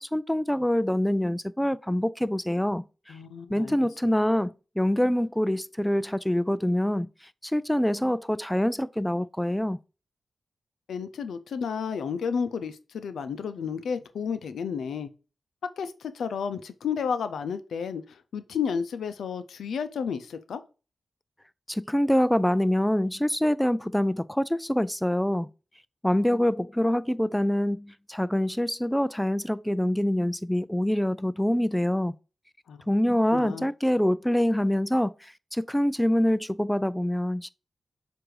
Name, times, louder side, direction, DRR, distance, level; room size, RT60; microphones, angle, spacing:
voice 1, 0.0-3.2 3.5-7.1 7.4-9.8 21.7-25.5 26.0-32.1 32.9-37.5, left 1 dB, 5° left, 0.3 m, -25 dB
voice 2, 3.1-3.8 10.9-15.1 15.8-20.6 32.7-32.8 33.3-33.7, left 6 dB, 90° left, 0.5 m, -32 dB
7.6 x 2.6 x 4.7 m
cardioid pair, 40°, 0 cm